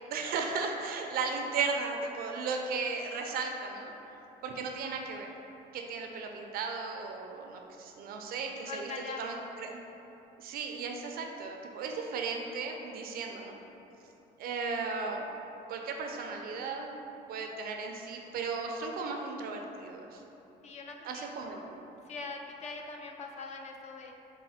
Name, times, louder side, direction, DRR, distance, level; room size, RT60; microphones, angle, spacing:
voice 1, 0.1-3.9 4.4-5.3 5.7-8.9 9.2-9.8 10.4-13.6 14.4-15.2 15.7-16.9 17.3-20.2 21.0-21.8, right 4 dB, 65° right, 2 dB, 0.4 m, -35 dB
voice 2, 8.6-9.3 20.6-21.3 22.1-24.1, left 4 dB, 40° left, 2 dB, 0.4 m, -42 dB
4.0 x 2.1 x 4.2 m, 3.0 s
cardioid pair, 110°, 17 cm